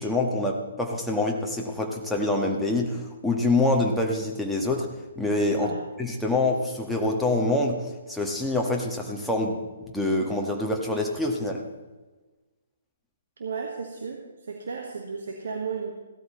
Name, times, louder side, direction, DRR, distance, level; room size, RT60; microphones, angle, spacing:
voice 1, 0.0-4.9 5.2-5.7 6.0-11.6, left 2 dB, ahead, -2 dB, 1.5 m, -26 dB
voice 2, 5.5-5.8 13.4-15.9, right 5 dB, 65° right, 2 dB, 1.5 m, -34 dB
16.5 x 13.0 x 3.1 m, 1.2 s
figure-of-eight pair, 130°, 0 cm